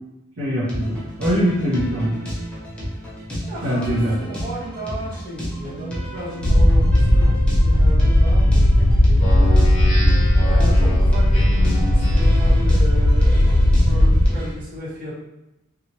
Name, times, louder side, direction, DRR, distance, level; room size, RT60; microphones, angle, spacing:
voice 1, 0.4-2.2 3.6-4.1, equal, 60° right, -10 dB, 0.8 m, -22 dB
sound 1, 0.6-14.5, equal, 5° left, 0.7 m, -32 dB
voice 2, 3.5-7.3 7.6-9.7 10.4-15.2, right 1 dB, 45° right, -8 dB, 1.2 m, -34 dB
sound 2, 6.4-14.2, left 1 dB, 70° left, 0.6 m, -15 dB
Speech synthesizer, 9.2-12.5, left 1 dB, 35° left, 0.9 m, -30 dB
2.9 x 2.4 x 2.8 m, 0.93 s
head